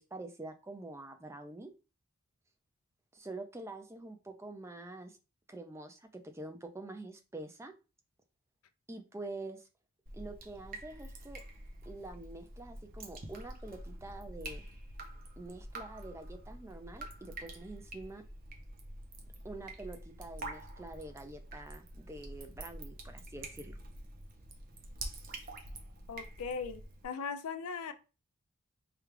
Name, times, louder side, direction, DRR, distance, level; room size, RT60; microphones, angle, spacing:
voice 1, 0.0-1.7 3.1-5.2 5.5-7.7 8.9-9.7 10.1-11.4 11.9-14.6 15.4-18.2 19.4-23.8, right 2 dB, 10° right, 6 dB, 0.4 m, -46 dB
Drip, 10.1-27.0, right 2 dB, 40° right, 0.7 m, -47 dB
voice 2, 26.1-27.9, left 5 dB, 80° left, 10 dB, 0.5 m, -39 dB
4.9 x 2.3 x 3.2 m, 0.31 s
head